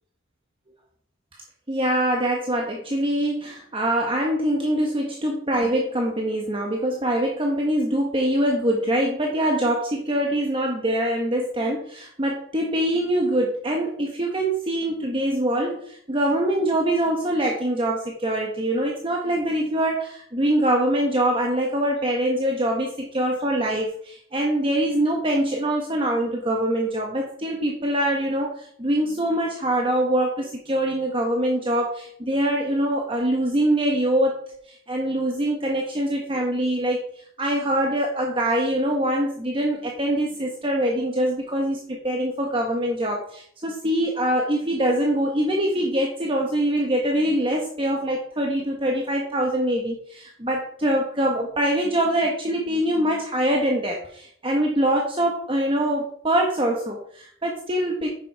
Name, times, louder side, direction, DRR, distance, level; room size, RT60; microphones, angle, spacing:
voice 1, 1.7-34.4 34.7-58.1, right 1 dB, 25° right, 0 dB, 1.2 m, -24 dB
9.7 x 7.0 x 4.7 m, 0.64 s
head